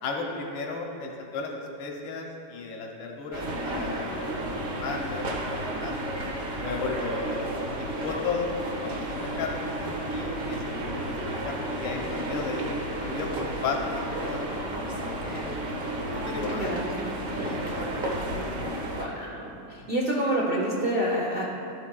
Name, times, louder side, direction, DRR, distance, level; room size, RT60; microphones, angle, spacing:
voice 1, 0.0-1.5 1.8-4.2 4.5-5.9 6.6-7.4 7.7-8.9 9.1-9.7 10.0-10.7 10.9-12.7 13.0-14.5 15.2-15.5 16.2-16.8 17.4-18.0 18.6-18.7 19.8-19.9, left 4 dB, 80° left, 0 dB, 1.5 m, -34 dB
sound 1, 3.3-19.1, right 1 dB, 55° right, 1.2 m, -32 dB
voice 2, 16.6-16.9 17.2-17.3 18.0-18.1 19.0-19.4 19.7-21.4, right 1 dB, 70° right, -4 dB, 0.5 m, -27 dB
12.0 x 8.5 x 2.3 m, 2.7 s
omnidirectional pair, 2.1 m